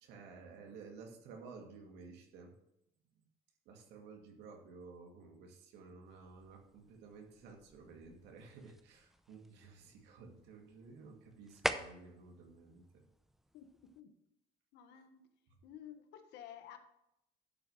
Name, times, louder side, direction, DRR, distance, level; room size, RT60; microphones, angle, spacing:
voice 1, 0.0-2.5 3.7-13.0, right 4 dB, 90° right, 2 dB, 2.2 m, -54 dB
sound 1, 6.0-14.0, equal, ahead, 0.7 m, -46 dB
voice 2, 13.5-14.1 14.7-15.3 15.6-16.8, left 10 dB, 85° left, 7 dB, 1.3 m, -53 dB
11.5 x 4.9 x 5.6 m, 0.81 s
cardioid pair, 110°, 17 cm